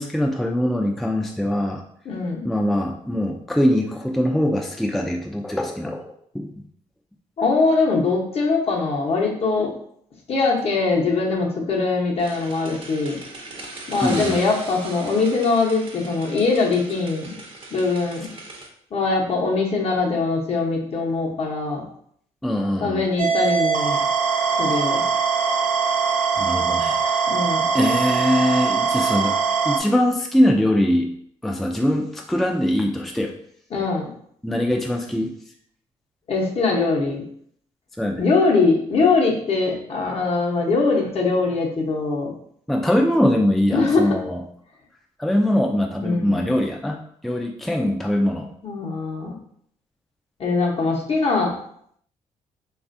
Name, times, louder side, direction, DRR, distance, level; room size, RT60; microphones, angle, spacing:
voice 1, 0.0-1.8 2.4-6.1 6.3-6.5 14.0-14.4 22.4-23.1 26.4-27.3 27.7-29.4 29.6-31.1 31.4-33.3 34.4-35.3 38.0-38.2 42.7-44.4 45.2-48.5, left 1 dB, ahead, 1 dB, 0.4 m, -22 dB
voice 2, 2.0-2.5 7.4-9.7 10.3-13.2 13.9-17.3 17.7-18.3 18.9-21.8 22.8-24.0 24.6-25.1 27.3-27.6 33.7-34.1 36.3-37.2 38.2-42.3 43.7-44.2 46.0-46.5 48.6-49.4 50.4-51.5, left 3 dB, 50° left, -1 dB, 0.8 m, -22 dB
sound 1, 12.2-18.7, right 2 dB, 45° right, 0.6 m, -38 dB
sound 2, 23.2-29.8, right 6 dB, 85° right, 0.4 m, -22 dB
3.2 x 2.4 x 2.5 m, 0.66 s
cardioid pair, 70°, 13 cm